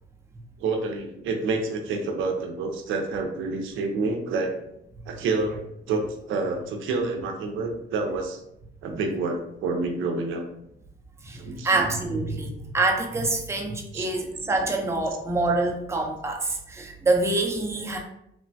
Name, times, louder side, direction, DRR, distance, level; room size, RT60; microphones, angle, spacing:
voice 1, 0.6-4.5 5.1-8.4 8.8-10.4 11.4-11.9 13.9-14.1, right 3 dB, 85° right, 3 dB, 0.5 m, -28 dB
voice 2, 11.2-18.0, right 2 dB, 15° right, 0 dB, 0.5 m, -26 dB
3.1 x 2.1 x 2.6 m, 0.78 s
cardioid pair, 90°, 20 cm